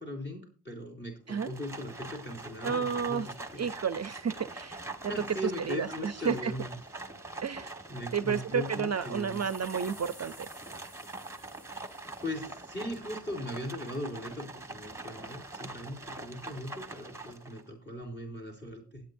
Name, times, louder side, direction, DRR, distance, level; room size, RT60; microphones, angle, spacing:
voice 1, 0.0-3.7 5.1-6.7 7.9-9.4 12.2-19.0, left 1 dB, 30° left, 3 dB, 3.7 m, -39 dB
Livestock farm animals working animals, 1.3-17.7, right 2 dB, 5° right, 1.5 m, -43 dB
voice 2, 2.6-3.3 3.6-4.8 5.4-6.5 7.4-7.7 8.1-10.5, right 6 dB, 45° right, 13 dB, 0.6 m, -31 dB
sound 1, 8.8-13.0, left 1 dB, 85° left, 5.8 m, -56 dB
19.5 x 8.7 x 2.7 m, 0.37 s
wide cardioid pair, 110°, 38 cm